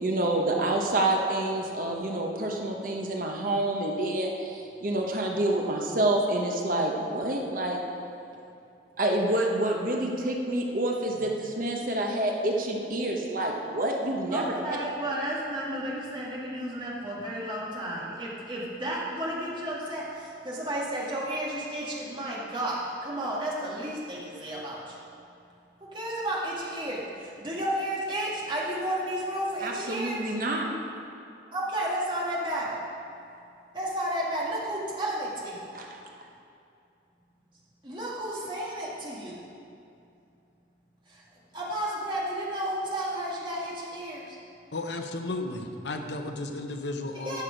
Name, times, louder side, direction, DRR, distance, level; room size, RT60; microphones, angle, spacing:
voice 1, 0.0-7.8 9.0-14.5 29.6-30.7 35.7-36.0, right 1 dB, 45° right, 1 dB, 0.9 m, -28 dB
voice 2, 14.3-25.0 25.8-30.3 31.5-32.8 33.7-35.7 37.8-39.4 41.1-41.2 41.5-44.4 47.2-47.4, right 1 dB, 25° right, -5 dB, 1.7 m, -32 dB
voice 3, 44.7-47.4, left 2 dB, 65° left, 5 dB, 0.7 m, -34 dB
11.5 x 6.4 x 5.1 m, 2.6 s
head